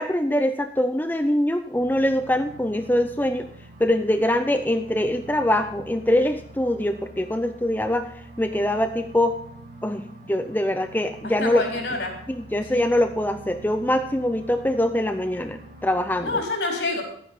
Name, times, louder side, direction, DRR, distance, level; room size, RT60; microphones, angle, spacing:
voice 1, 0.0-3.5 3.8-8.1 8.4-9.4 9.8-11.6 12.3-16.4, left 1 dB, 10° left, 6 dB, 0.6 m, -23 dB
sound 1, 1.7-16.5, right 1 dB, 45° right, 3.2 m, -45 dB
voice 2, 11.2-12.2 12.7-12.9 16.2-17.0, left 2 dB, 75° left, 0 dB, 4.5 m, -27 dB
12.0 x 9.4 x 5.6 m, 0.62 s
head